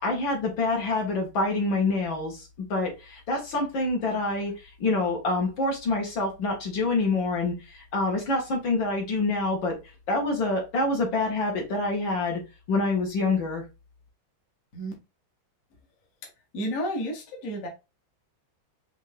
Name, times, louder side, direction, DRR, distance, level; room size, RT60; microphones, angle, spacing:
voice 1, 0.0-9.8 10.1-12.4 12.7-13.6, left 2 dB, 70° left, 0 dB, 2.2 m, -26 dB
voice 2, 16.5-17.7, equal, 50° left, 1 dB, 1.3 m, -31 dB
5.3 x 2.8 x 3.3 m, 0.26 s
omnidirectional pair, 2.2 m